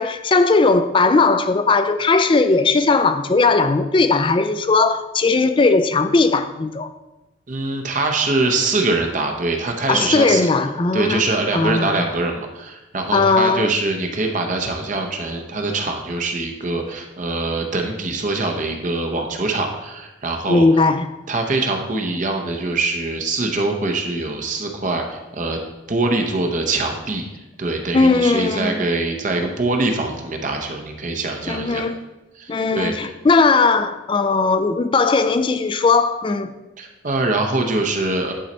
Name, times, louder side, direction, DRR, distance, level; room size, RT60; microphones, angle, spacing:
voice 1, 0.0-6.9 9.9-11.2 11.5-12.0 13.1-13.7 20.5-21.1 27.9-28.9 31.5-32.0 32.5-36.5, left 3 dB, 25° left, 0.4 m, -18 dB
voice 2, 7.5-10.5 10.9-20.7 21.3-25.6 25.9-27.3 27.6-31.8 32.4-33.1 36.8-38.3, right 2 dB, 45° right, 0.8 m, -23 dB
10.0 x 4.0 x 4.3 m
head